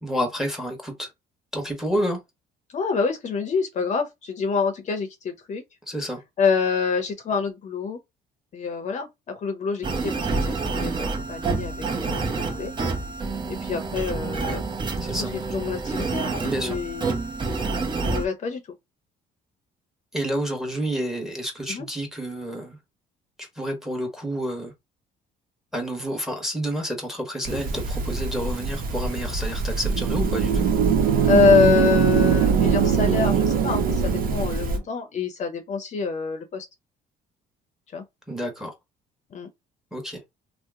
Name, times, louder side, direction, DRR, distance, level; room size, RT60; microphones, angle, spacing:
voice 1, 0.0-1.1 1.5-2.2 5.9-6.2 15.0-15.3 16.5-16.8 20.1-22.8 23.4-24.7 25.7-30.7 38.3-38.7 39.9-40.2, equal, ahead, 1.2 m, -29 dB
voice 2, 2.7-5.6 6.4-8.0 8.5-12.7 13.6-14.6 15.3-17.2 18.0-18.6 21.7-21.9 31.2-36.7 37.9-38.0 39.3-39.5, left 5 dB, 45° left, 0.7 m, -26 dB
sound 1, 9.8-18.3, right 3 dB, 30° right, 0.7 m, -28 dB
sound 2, 27.4-34.8, right 2 dB, 60° right, 0.9 m, -27 dB
sound 3, 29.8-34.8, right 9 dB, 80° right, 0.5 m, -22 dB
2.8 x 2.1 x 3.5 m
cardioid pair, 110°, 17 cm